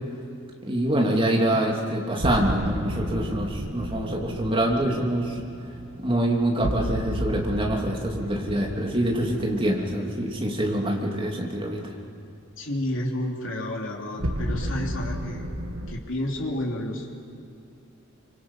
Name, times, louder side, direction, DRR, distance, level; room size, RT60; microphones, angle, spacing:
voice 1, 0.6-5.4 6.0-11.9, right 1 dB, 25° right, -1 dB, 3.1 m, -25 dB
sound 1, 2.2-11.2 14.2-16.0, equal, 90° right, 1.7 m, -33 dB
voice 2, 12.6-15.5 15.9-17.2, left 1 dB, 70° left, -2 dB, 3.1 m, -30 dB
25.5 x 25.5 x 5.8 m, 2.7 s
head